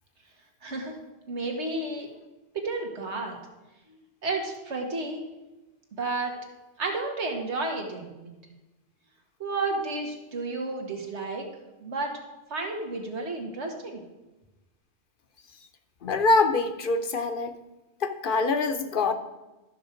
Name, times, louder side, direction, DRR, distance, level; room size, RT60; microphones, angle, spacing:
voice 1, 0.6-1.0 1.3-2.1 2.6-3.4 4.2-5.2 6.0-6.4 6.8-8.3 9.4-11.5 11.8-12.2 12.5-14.0, right 3 dB, 90° right, 2 dB, 1.9 m, -31 dB
voice 2, 16.0-17.5 18.0-19.1, left 3 dB, 55° left, 8 dB, 0.8 m, -24 dB
12.5 x 6.1 x 5.1 m, 1.1 s
omnidirectional pair, 1.1 m